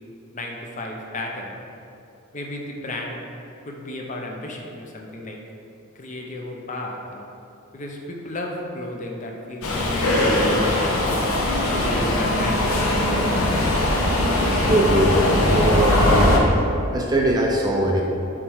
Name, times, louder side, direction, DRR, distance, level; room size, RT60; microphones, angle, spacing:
voice 1, 0.3-1.6 2.3-3.2 3.6-5.4 5.9-7.3 7.7-11.0 11.6-12.9, left 1 dB, 35° left, 1 dB, 0.6 m, -34 dB
Subway metro underground, 9.6-16.4, left 1 dB, 75° left, 0.8 m, -20 dB
voice 2, 14.6-16.4 16.9-18.0, right 1 dB, 15° right, 0 dB, 0.4 m, -21 dB
7.2 x 3.1 x 4.6 m, 2.6 s
head